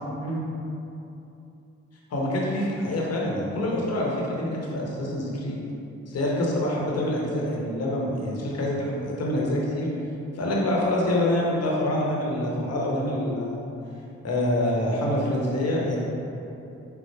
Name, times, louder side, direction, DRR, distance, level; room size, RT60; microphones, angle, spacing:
voice 1, 0.2-0.5 2.1-5.6 6.1-9.9 10.3-13.6 14.2-16.0, left 1 dB, 60° left, -3 dB, 0.9 m, -26 dB
4.3 x 2.0 x 4.4 m, 2.8 s
cardioid pair, 60°, 29 cm